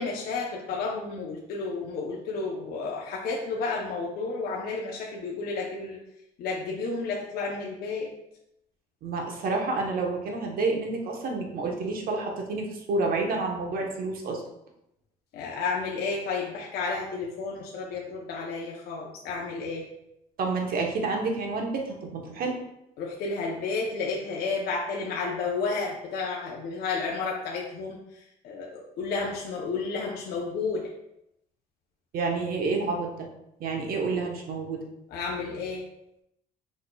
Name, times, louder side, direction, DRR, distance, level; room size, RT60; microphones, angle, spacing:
voice 1, 0.0-6.0 6.4-8.1 15.3-19.9 23.0-30.9 35.1-35.9, left 4 dB, 70° left, -3 dB, 0.7 m, -32 dB
voice 2, 9.0-14.4 20.4-22.6 32.1-33.3 33.6-34.8, right 3 dB, 60° right, 1 dB, 1.0 m, -29 dB
5.1 x 4.2 x 2.3 m, 0.83 s
cardioid pair, 110°, 17 cm